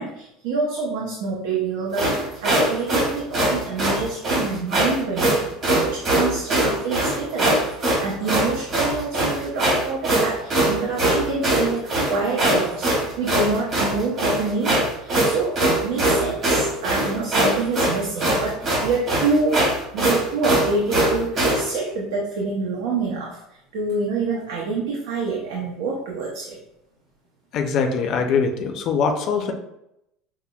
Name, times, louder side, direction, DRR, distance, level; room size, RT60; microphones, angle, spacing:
voice 1, 0.0-5.6 5.8-11.8 12.1-15.6 15.8-23.4 23.7-26.6, right 3 dB, 85° right, -3 dB, 0.7 m, -27 dB
sound 1, 1.9-21.6, right 1 dB, 35° right, 1.4 m, -21 dB
voice 2, 27.5-29.5, left 5 dB, 45° left, 4 dB, 0.5 m, -22 dB
5.7 x 2.1 x 2.3 m, 0.83 s
cardioid pair, 155°, 0 cm